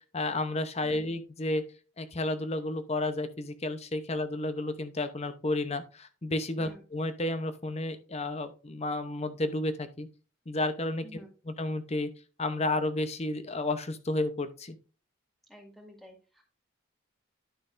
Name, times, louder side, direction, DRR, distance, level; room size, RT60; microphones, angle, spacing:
voice 1, 0.1-1.6 2.0-10.1 10.5-12.1 12.4-14.8, left 2 dB, 30° left, 10 dB, 0.8 m, -32 dB
voice 2, 15.5-16.4, equal, ahead, 1 dB, 2.1 m, -51 dB
11.0 x 5.8 x 2.6 m, 0.34 s
head